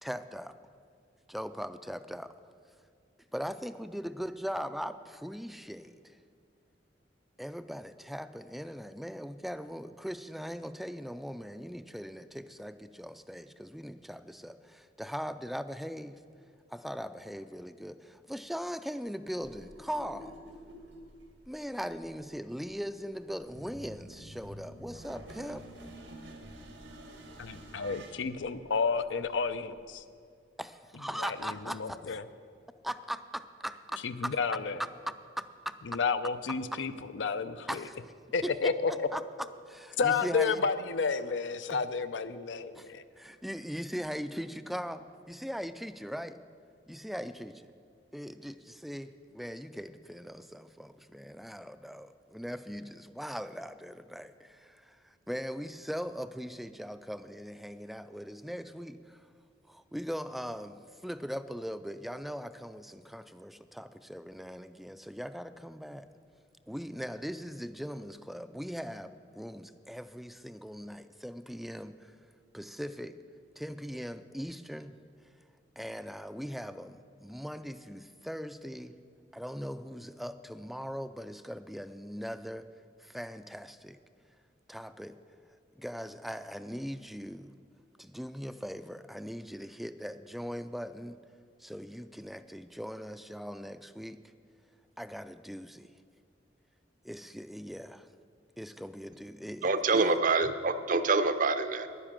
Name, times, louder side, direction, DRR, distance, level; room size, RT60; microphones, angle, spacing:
voice 1, 0.0-0.5 1.3-2.3 3.3-6.2 7.4-16.2 16.7-20.4 21.5-25.7 30.6-32.0 32.8-34.3 34.8-34.9 35.4-35.7 37.7-38.0 38.4-39.2 39.7-40.6 42.7-42.9 43.2-46.4 46.9-47.7 48.1-59.3 59.7-66.1 66.7-72.2 72.5-73.2 73.6-74.9 75.8-78.9 79.3-82.7 83.0-84.0 84.7-85.1 85.8-87.5 88.0-91.2 91.6-94.2 95.0-95.9 97.0-98.1 98.6-100.2, equal, ahead, 12 dB, 0.3 m, -40 dB
sound 1, 19.4-29.9, right 1 dB, 90° right, 1.8 m, -50 dB
voice 2, 27.4-30.0 31.2-32.2 34.0-34.8 35.9-37.8 38.3-39.1 40.0-43.0, left 5 dB, 85° left, 11 dB, 0.6 m, -31 dB
voice 3, 99.6-101.9, right 3 dB, 45° right, 11 dB, 0.6 m, -26 dB
10.5 x 9.9 x 7.4 m, 2.2 s
head